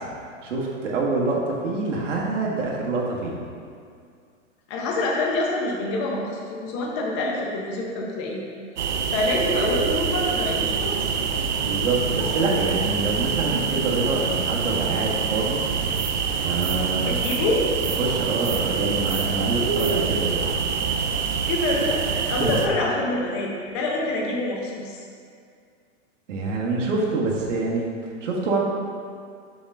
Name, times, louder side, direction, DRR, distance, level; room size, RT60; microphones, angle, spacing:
voice 1, 0.4-3.4 11.6-15.6 16.4-17.1 18.0-20.4 22.4-22.7 26.3-28.6, right 3 dB, 70° right, -3 dB, 1.6 m, -26 dB
voice 2, 4.7-6.3 6.6-8.4 8.8-11.0 17.0-17.6 21.5-25.0, left 2 dB, 25° left, -1 dB, 0.6 m, -26 dB
sound 1, 8.8-22.7, right 6 dB, 40° right, 0.4 m, -25 dB
6.9 x 3.7 x 5.4 m, 2.2 s
hypercardioid pair, 165°, 38 cm